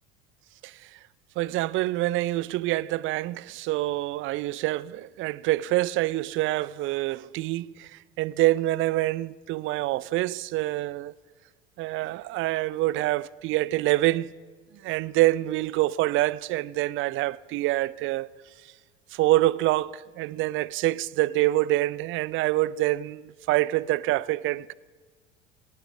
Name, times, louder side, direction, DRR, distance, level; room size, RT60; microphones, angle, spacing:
voice 1, 1.4-7.9 8.2-11.1 11.8-14.3 14.8-18.3 19.1-24.7, right 17 dB, 40° right, 0.4 m, -26 dB
17.0 x 9.9 x 7.3 m
hypercardioid pair, 70°, 32 cm